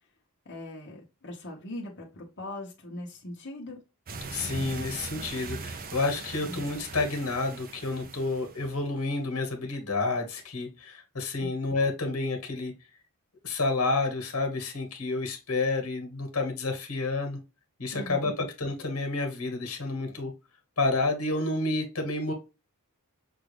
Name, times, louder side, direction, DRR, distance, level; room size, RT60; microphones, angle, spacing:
voice 1, 0.4-3.8 6.4-6.6 11.4-11.5 17.9-18.3, left 1 dB, 55° left, 1.1 m, -40 dB
sound 1, 4.1-8.9, right 4 dB, 45° right, 0.6 m, -40 dB
voice 2, 4.3-12.7 13.4-17.4 17.8-20.3 20.8-22.3, left 3 dB, 85° left, 1.4 m, -30 dB
5.9 x 2.5 x 3.2 m
head